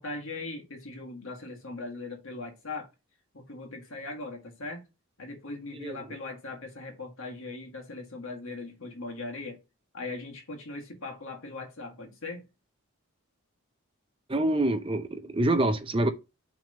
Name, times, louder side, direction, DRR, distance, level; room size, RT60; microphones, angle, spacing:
voice 1, 0.0-2.9 3.3-4.9 5.2-9.6 9.9-12.5, left 3 dB, 65° left, 1.7 m, -39 dB
voice 2, 5.7-6.2 14.3-16.1, right 1 dB, 25° right, 0.6 m, -26 dB
6.1 x 3.5 x 5.3 m
head